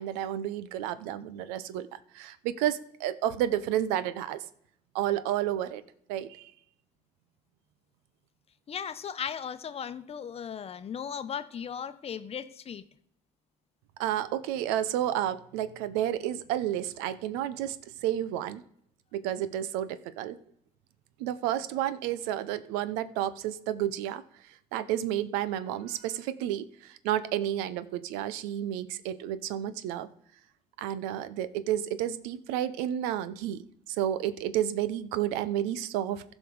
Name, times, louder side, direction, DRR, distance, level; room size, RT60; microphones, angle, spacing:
voice 1, 0.0-4.4 4.9-5.8 6.1-6.5 14.0-18.6 19.1-20.4 21.2-24.2 24.7-30.1 30.8-33.6 33.9-36.2, right 11 dB, 85° right, 0.7 m, -31 dB
voice 2, 8.7-12.8, left 7 dB, 40° left, 0.8 m, -37 dB
15.0 x 5.3 x 4.7 m
supercardioid pair, 85°, 16 cm